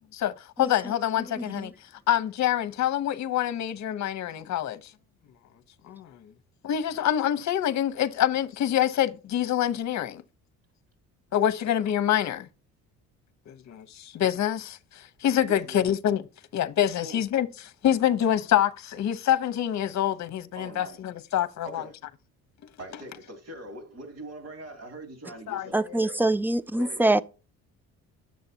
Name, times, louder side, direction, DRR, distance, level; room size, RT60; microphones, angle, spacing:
voice 1, 0.1-4.9 5.8-6.3 6.6-10.2 11.3-12.5 13.5-16.2 16.5-21.9 25.5-26.0, left 11 dB, 55° left, 1.0 m, -26 dB
voice 2, 1.4-1.7 25.7-27.2, right 2 dB, 5° right, 0.5 m, -24 dB
voice 3, 15.5-15.8 17.0-17.2 20.6-21.0 21.6-21.9 22.8-26.3 26.8-27.0, right 1 dB, 50° right, 2.9 m, -42 dB
10.5 x 7.5 x 2.8 m
cardioid pair, 85°, 33 cm